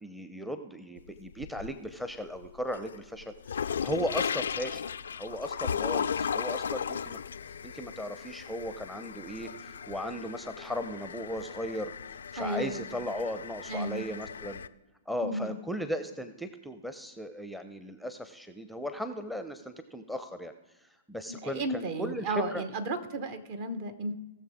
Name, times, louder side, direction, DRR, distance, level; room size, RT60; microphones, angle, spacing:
voice 1, 0.0-4.8 5.2-7.2 7.6-11.9 12.3-14.6 15.1-20.5 21.1-22.6, equal, ahead, 8 dB, 0.6 m, -36 dB
sound 1, 1.0-1.9 2.4-14.7, left 7 dB, 70° left, 0.3 m, -36 dB
voice 2, 12.4-12.8 13.7-14.0 15.2-15.6 21.3-24.2, right 2 dB, 50° right, 9 dB, 1.1 m, -34 dB
18.5 x 6.8 x 3.6 m, 1.1 s
figure-of-eight pair, 110°, 0 cm